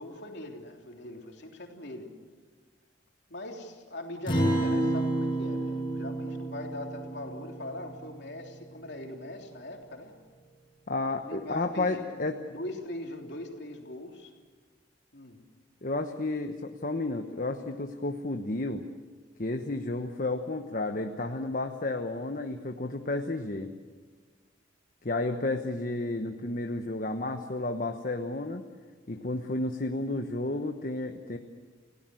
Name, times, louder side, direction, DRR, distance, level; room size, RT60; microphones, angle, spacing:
voice 1, 0.0-2.1 3.3-10.1 11.1-12.2 12.5-14.3 15.1-15.4, left 1 dB, 65° left, 1 dB, 3.5 m, -41 dB
Acoustic guitar, 4.3-9.0, right 1 dB, 25° left, 7.2 m, -30 dB
voice 2, 10.9-12.4 15.8-18.8 19.4-23.7 25.0-28.6 29.1-31.4, left 2 dB, 50° left, 5 dB, 1.1 m, -32 dB
29.5 x 17.0 x 7.8 m, 1.5 s
head